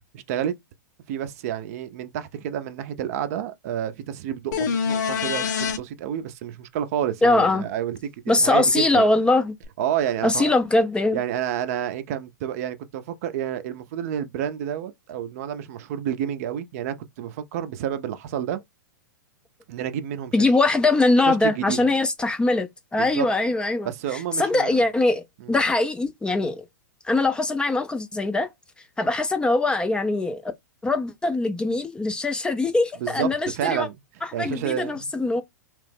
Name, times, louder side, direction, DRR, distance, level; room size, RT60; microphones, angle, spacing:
voice 1, 0.1-0.5 1.1-8.0 8.2-9.0 9.8-10.5 11.1-18.6 19.7-20.5 21.3-21.8 23.0-23.3 23.8-24.8 25.4-25.5 33.0-34.0 34.3-35.1, right 10 dB, 50° right, 0.5 m, -29 dB
sound 1, 4.5-5.8 9.6-9.7, left 6 dB, 60° left, 0.7 m, -25 dB
voice 2, 7.2-7.7 8.3-9.5 10.2-11.2 20.3-26.6 27.0-28.5 29.0-30.5 30.8-33.9 34.2-35.4, left 2 dB, 10° left, 0.4 m, -22 dB
2.9 x 2.0 x 3.3 m
hypercardioid pair, 110°, 10 cm